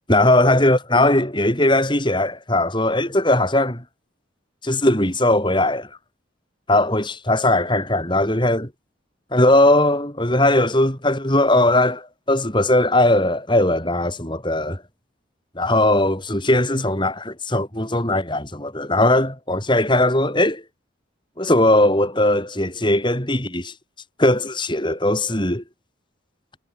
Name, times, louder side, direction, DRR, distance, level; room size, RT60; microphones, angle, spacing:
voice 1, 0.1-3.8 4.6-5.9 6.7-8.7 9.3-14.8 15.6-20.6 21.4-23.7 24.2-25.6, left 1 dB, 25° left, 7.3 m, -19 dB
head